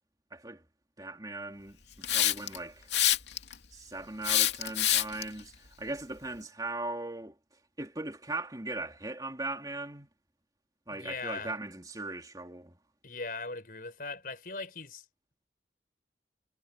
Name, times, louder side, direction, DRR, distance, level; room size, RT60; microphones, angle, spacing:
voice 1, 0.3-0.6 1.0-2.9 3.7-7.4 7.8-10.1 10.9-12.8, right 2 dB, 20° right, 3.1 m, -39 dB
Hiss, 2.0-2.6 2.9-3.5 4.2-5.2, left 12 dB, 85° left, 2.5 m, -25 dB
voice 2, 10.9-11.6 13.0-15.1, left 3 dB, 55° left, 5.8 m, -39 dB
head